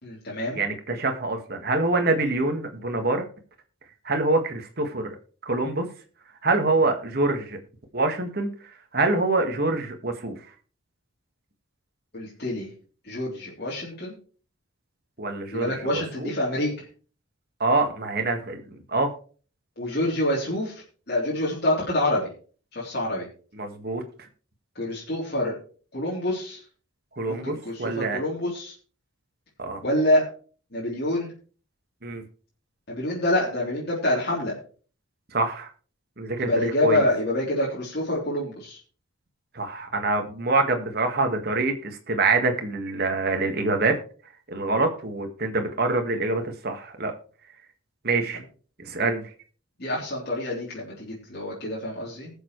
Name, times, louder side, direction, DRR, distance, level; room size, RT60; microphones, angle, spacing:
voice 1, 0.0-0.6 12.1-12.7 13.0-14.1 15.5-16.7 19.8-22.3 22.7-23.3 24.7-25.5 25.9-26.6 27.3-28.7 29.8-30.3 30.7-31.3 32.9-34.6 36.4-38.8 49.8-52.3, left 1 dB, 50° left, -6 dB, 3.3 m, -26 dB
voice 2, 0.5-3.2 4.1-5.2 5.4-5.9 6.4-7.6 7.9-8.5 8.9-10.4 15.2-16.3 17.6-19.1 23.5-24.0 27.2-28.2 29.6-29.8 32.0-32.2 35.3-35.7 36.2-37.0 39.5-43.9 44.5-47.1 48.0-48.4 48.8-49.2, right 3 dB, 50° right, 5 dB, 1.8 m, -25 dB
20.0 x 7.0 x 3.2 m, 0.40 s
head